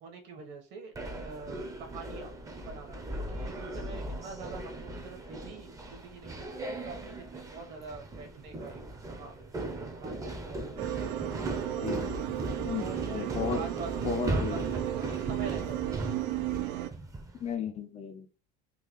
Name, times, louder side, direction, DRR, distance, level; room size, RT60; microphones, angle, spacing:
voice 1, 0.0-2.3 2.6-8.8 9.1-9.3 9.7-11.3 12.2-12.4 12.7-13.3 13.5-13.9 14.3-16.0, right 4 dB, 55° right, 3 dB, 1.2 m, -45 dB
sound 1, 0.9-17.4, right 1 dB, 15° right, 0.6 m, -38 dB
sound 2, 10.8-16.9, right 13 dB, 85° right, 0.5 m, -34 dB
voice 2, 11.7-12.1 12.6-13.6 14.0-14.6 17.4-18.3, left 6 dB, 30° left, 7 dB, 0.5 m, -34 dB
3.8 x 2.3 x 3.0 m, 0.35 s
supercardioid pair, 115°, 21 cm